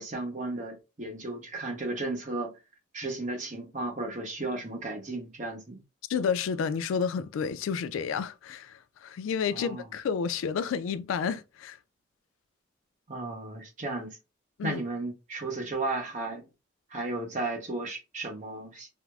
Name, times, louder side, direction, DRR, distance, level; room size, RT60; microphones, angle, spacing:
voice 1, 0.0-2.5 2.9-5.8 9.5-9.9 13.1-14.2 14.6-16.5 16.9-18.9, right 2 dB, 40° right, 0.8 m, -34 dB
voice 2, 6.1-11.8 14.6-14.8, left 6 dB, 80° left, 0.3 m, -30 dB
4.4 x 2.0 x 2.3 m
head